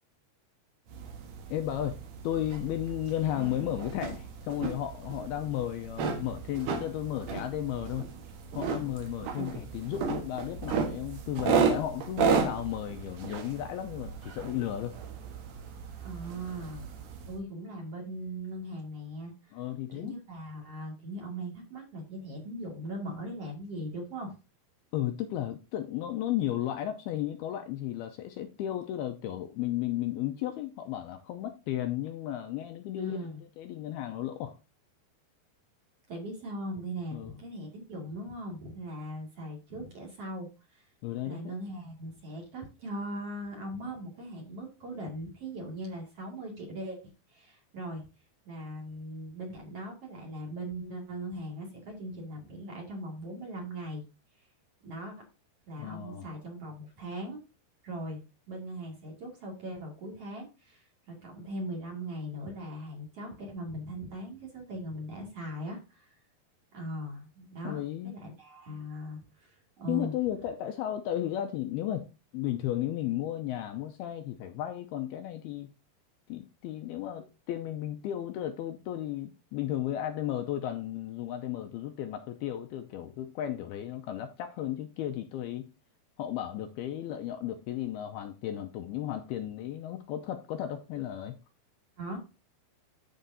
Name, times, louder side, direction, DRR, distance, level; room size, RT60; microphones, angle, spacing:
sound 1, 0.9-17.4, right 6 dB, 60° right, 2.4 m, -34 dB
voice 1, 1.5-8.1 8.5-15.0 19.5-20.2 24.9-34.6 37.1-37.3 41.0-41.5 55.8-56.3 67.6-68.2 69.9-72.1 72.3-75.7 76.3-85.7 86.2-91.4, left 12 dB, 80° left, 2.4 m, -34 dB
voice 2, 3.3-3.7 16.0-16.9 17.3-19.6 19.9-24.4 33.0-33.4 36.1-40.9 41.2-47.0 47.3-48.1 48.4-54.0 54.8-55.2 55.7-57.4 57.8-66.2 66.7-70.1 92.0-92.2, right 1 dB, 40° right, 2.8 m, -40 dB
13.0 x 5.2 x 2.7 m
omnidirectional pair, 4.9 m